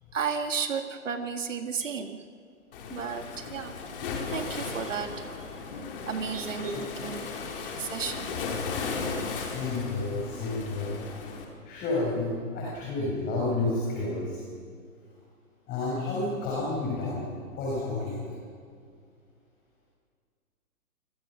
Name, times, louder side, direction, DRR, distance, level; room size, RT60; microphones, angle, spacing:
voice 1, 0.1-2.2 2.9-3.7 4.1-5.3 6.1-7.3 7.8-8.4, right 6 dB, 55° right, 6 dB, 1.9 m, -33 dB
Waves surf, 2.7-11.4, left 4 dB, 40° left, 4.8 m, -36 dB
voice 2, 9.4-11.0 11.6-14.4 15.7-17.3 17.6-18.3, left 2 dB, 20° left, -4 dB, 6.2 m, -30 dB
28.5 x 24.5 x 6.4 m, 2.2 s
figure-of-eight pair, 130°, 44 cm